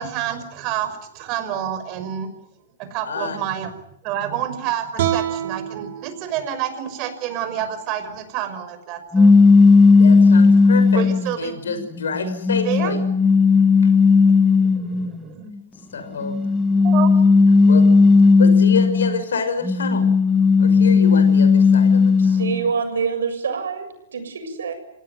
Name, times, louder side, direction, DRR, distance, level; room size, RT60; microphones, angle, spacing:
voice 1, 0.0-2.3 2.8-3.7 4.0-9.3 10.9-11.5 12.6-12.9 14.5-15.5 15.8-15.9 16.8-17.1 20.8-20.9, right 10 dB, 40° right, 9 dB, 5.7 m, -28 dB
voice 2, 3.0-3.4 9.9-11.0 11.4-13.0 15.9-16.4 17.7-17.9 18.4-20.1 20.6-22.6, left 4 dB, 80° left, 8 dB, 5.9 m, -27 dB
sound 1, 5.0-8.1, right 10 dB, 60° right, 4.5 m, -29 dB
sound 2, 9.1-11.3 12.0-15.1 16.2-19.2 19.6-22.6, left 4 dB, 10° left, 1.2 m, -14 dB
voice 3, 22.2-24.8, right 6 dB, 80° right, 5 dB, 7.3 m, -26 dB
28.0 x 17.5 x 9.5 m, 0.80 s
hypercardioid pair, 125°, 0 cm